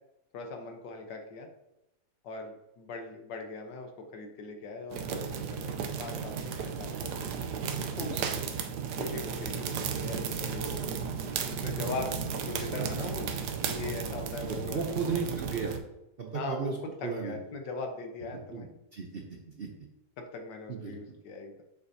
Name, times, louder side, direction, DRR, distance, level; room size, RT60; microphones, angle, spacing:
voice 1, 0.3-1.5 2.2-5.7 6.0-6.9 7.9-8.1 8.9-10.8 11.5-15.0 16.3-18.7 20.2-21.6, left 3 dB, 85° left, 3 dB, 1.6 m, -40 dB
sound 1, 4.9-15.8, right 6 dB, 75° right, 1.2 m, -34 dB
voice 2, 7.9-8.5 10.8-11.0 14.4-15.7 16.2-17.4 18.5-19.9 20.7-21.2, right 5 dB, 50° right, 1 dB, 0.7 m, -36 dB
7.0 x 6.7 x 2.8 m, 0.90 s
omnidirectional pair, 1.8 m